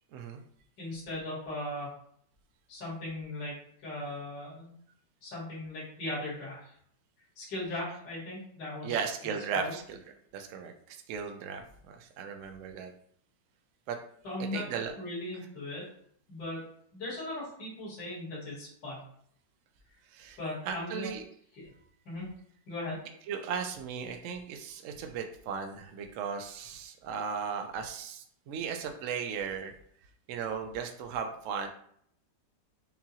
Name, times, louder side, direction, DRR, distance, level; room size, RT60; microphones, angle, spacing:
voice 1, 0.8-1.9 2.7-4.7 5.2-6.7 7.4-9.0 9.5-9.7 14.2-14.7 15.0-15.8 16.3-16.6 16.9-19.0 20.4-21.1 21.6-21.7 22.1-22.3 22.7-23.0, left 1 dB, 70° left, -8 dB, 2.4 m, -38 dB
voice 2, 8.8-10.0 10.3-12.9 13.9-14.0 14.5-14.9 20.1-20.4 20.7-21.2 23.3-29.7 30.3-31.7, right 6 dB, 90° right, 4 dB, 0.6 m, -36 dB
5.6 x 2.3 x 2.8 m, 0.65 s
omnidirectional pair, 2.0 m